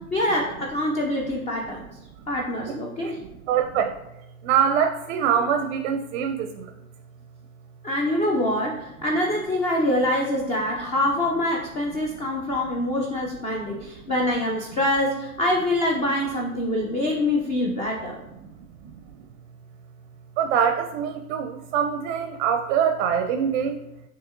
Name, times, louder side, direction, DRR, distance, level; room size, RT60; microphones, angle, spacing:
voice 1, 0.0-1.9 2.3-3.2 7.8-18.2, left 1 dB, 15° left, -1 dB, 0.4 m, -25 dB
voice 2, 3.5-3.9 4.4-6.7 13.7-13.9 18.8-18.9 20.4-23.8, right 8 dB, 50° right, 7 dB, 0.5 m, -24 dB
5.9 x 2.8 x 2.5 m, 0.93 s
hypercardioid pair, 100°, 43 cm